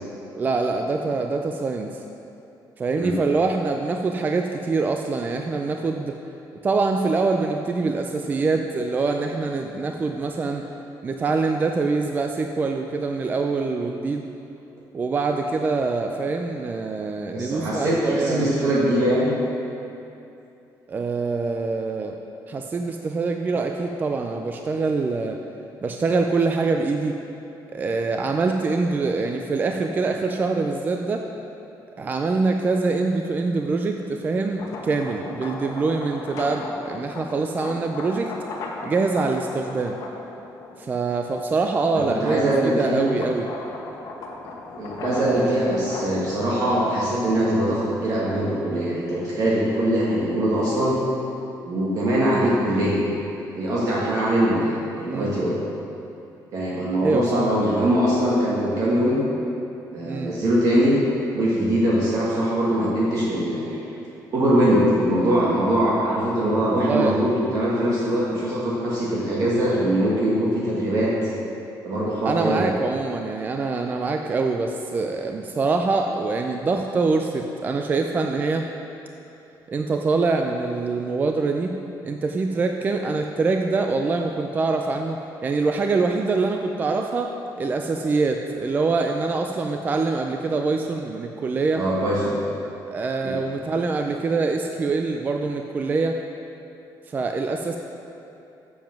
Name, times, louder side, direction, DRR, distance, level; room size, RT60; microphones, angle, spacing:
voice 1, 0.4-2.0 2.8-6.2 6.6-10.6 11.0-14.3 14.9-18.5 20.9-22.1 22.5-25.4 25.8-27.2 27.7-31.3 32.0-38.3 38.8-40.0 40.8-43.5 45.0-45.6 55.0-55.3 57.0-57.6 60.1-60.3 66.7-67.2 72.2-78.7 79.7-81.7 82.0-91.9 92.9-96.2 97.1-97.8, right 3 dB, 25° right, 4 dB, 0.4 m, -24 dB
voice 2, 17.3-19.3 42.1-43.2 44.8-51.0 51.6-53.0 53.5-55.6 56.5-59.2 59.9-61.0 61.3-63.8 64.3-71.1 71.8-72.6 91.7-92.4 93.2-93.4, right 1 dB, 50° right, -6 dB, 1.4 m, -22 dB
sound 1, 34.4-41.0 41.5-48.7, left 3 dB, 50° left, 1.1 m, -37 dB
7.4 x 7.0 x 5.9 m, 2.8 s
cardioid pair, 160°, 8 cm